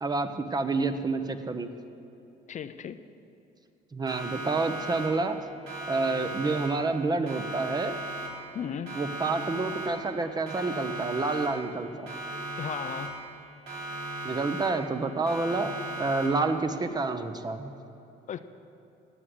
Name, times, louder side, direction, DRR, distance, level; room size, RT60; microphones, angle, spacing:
voice 1, 0.0-1.7 3.9-5.4 5.9-8.0 8.9-12.1 14.2-17.7, right 3 dB, 25° right, 8 dB, 1.1 m, -29 dB
voice 2, 2.5-3.0 8.5-9.0 12.6-13.1 18.3-18.4, left 8 dB, 45° left, 11 dB, 0.7 m, -35 dB
Siren, 4.1-5.4 5.7-7.0 7.3-8.6 8.9-10.2 10.5-11.8 12.1-13.4 13.7-15.0 15.3-16.6, right 2 dB, 75° right, 4.2 m, -37 dB
16.0 x 9.8 x 8.0 m, 2.8 s
cardioid pair, 110°, 17 cm